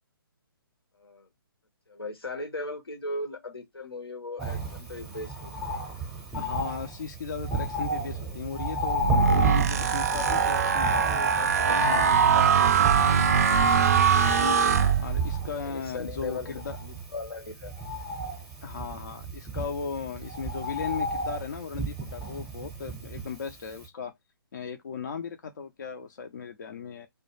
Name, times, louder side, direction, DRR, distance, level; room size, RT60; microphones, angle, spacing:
voice 1, 1.0-1.3 1.9-5.8 15.6-17.7, left 2 dB, 80° left, 0.7 m, -38 dB
Bird, 4.4-23.5 23.8-23.9, equal, 5° right, 0.6 m, -33 dB
voice 2, 6.3-12.9 15.0-16.8 18.6-24.1 24.5-27.1, left 6 dB, 50° left, 0.4 m, -37 dB
sound 1, 9.0-15.5, right 7 dB, 40° right, 0.3 m, -22 dB
2.2 x 2.1 x 3.0 m
figure-of-eight pair, 135°, 12 cm